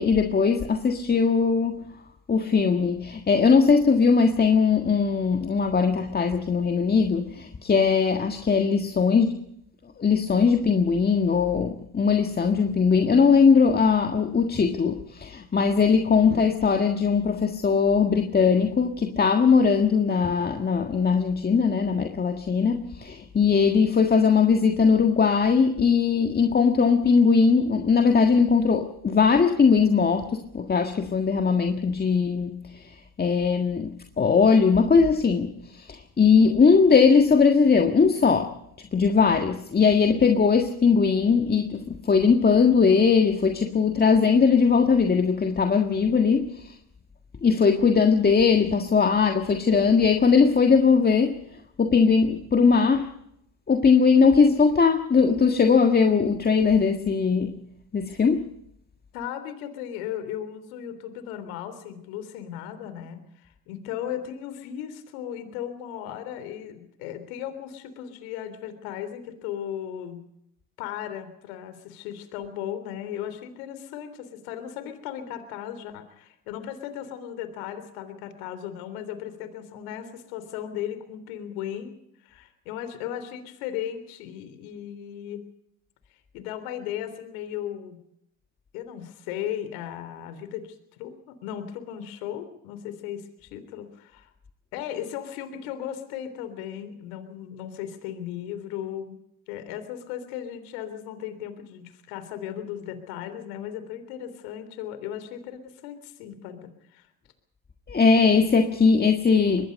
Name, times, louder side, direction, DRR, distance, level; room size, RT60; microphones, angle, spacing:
voice 1, 0.0-1.8 2.3-9.4 10.0-46.8 47.4-51.4 51.8-53.2 53.7-57.5 57.9-58.5 107.9-109.7, left 5 dB, 20° left, 6 dB, 1.7 m, -20 dB
voice 2, 59.1-70.2 70.8-81.9 82.2-85.4 86.1-88.0 88.7-94.3 94.7-99.2 99.5-107.1, left 10 dB, 80° left, 11 dB, 3.6 m, -36 dB
24.0 x 20.5 x 5.3 m, 0.76 s
supercardioid pair, 100°, 43 cm